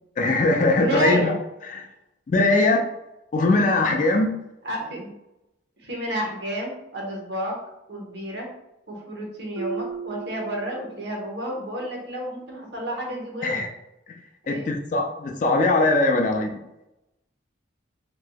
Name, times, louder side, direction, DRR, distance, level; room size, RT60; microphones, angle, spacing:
voice 1, 0.2-1.3 1.7-1.9 2.3-2.9 3.3-4.3 13.4-13.7 14.1-14.2 14.5-16.6, left 2 dB, 40° left, 3 dB, 0.3 m, -21 dB
voice 2, 0.8-1.3 4.6-5.1 5.8-7.5 7.9-8.5 8.9-13.6 14.4-14.7, equal, 55° right, -1 dB, 0.9 m, -30 dB
Marimba xylophone, 9.6-11.3, right 6 dB, 75° right, 0.4 m, -35 dB
3.3 x 2.9 x 2.2 m, 0.89 s
head